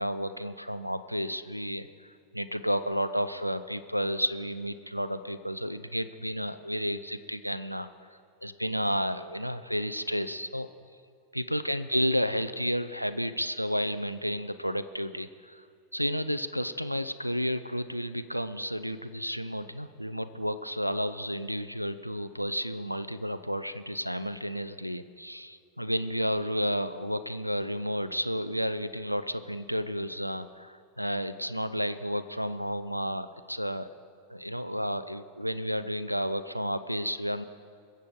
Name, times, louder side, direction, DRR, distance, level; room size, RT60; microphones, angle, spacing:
voice 1, 0.0-7.9 8.4-10.7 11.3-15.6 15.9-33.9 34.3-37.4, equal, 90° right, 13 dB, 0.4 m, -31 dB
21.5 x 7.5 x 5.1 m, 2.3 s
figure-of-eight pair, 90°, 0 cm